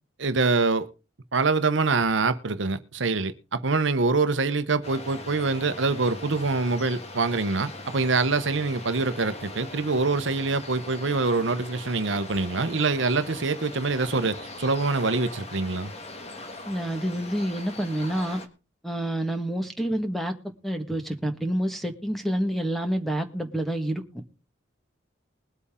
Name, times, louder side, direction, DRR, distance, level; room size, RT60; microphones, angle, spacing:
voice 1, 0.2-0.9 1.3-15.9, right 3 dB, 75° right, 0.9 m, -25 dB
sound 1, 4.8-18.5, left 2 dB, 35° left, 1.7 m, -41 dB
voice 2, 16.6-18.4 18.8-20.3 20.6-24.0, right 1 dB, ahead, 1.6 m, -28 dB
21.0 x 8.3 x 3.7 m
head